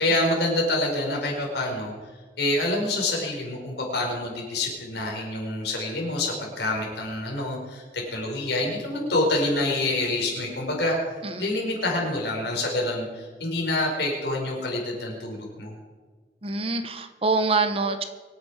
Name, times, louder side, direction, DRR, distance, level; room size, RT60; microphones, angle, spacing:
voice 1, 0.0-1.9 2.4-10.9 11.4-15.7, left 2 dB, 75° left, -1 dB, 5.0 m, -27 dB
voice 2, 16.4-18.0, right 3 dB, 35° right, 9 dB, 0.9 m, -25 dB
24.5 x 9.1 x 4.9 m, 1.4 s
head